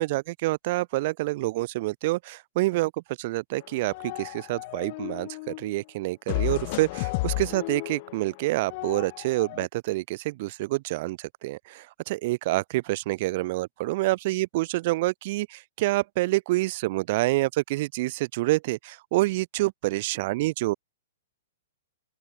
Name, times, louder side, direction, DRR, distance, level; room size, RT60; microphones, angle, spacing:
voice 1, 0.0-2.9 3.2-20.7, right 19 dB, 50° right, 1.6 m, -27 dB
sound 1, 3.6-5.7 6.3-9.7, left 25 dB, 45° left, 0.8 m, -33 dB
open air
figure-of-eight pair, 115°, 0 cm